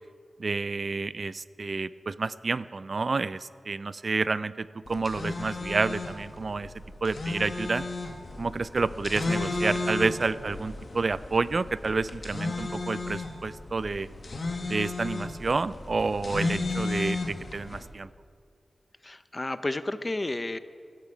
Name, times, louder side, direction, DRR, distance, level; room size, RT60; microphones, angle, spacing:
voice 1, 0.4-6.7 7.0-7.8 8.4-14.1 14.7-18.1, right 3 dB, 60° right, 17 dB, 0.4 m, -29 dB
sound 1, 4.9-17.8, left 3 dB, 60° left, 1.8 m, -34 dB
voice 2, 19.0-20.6, left 2 dB, 35° left, 12 dB, 0.7 m, -31 dB
17.0 x 13.5 x 5.0 m, 2.2 s
cardioid pair, 45°, 0 cm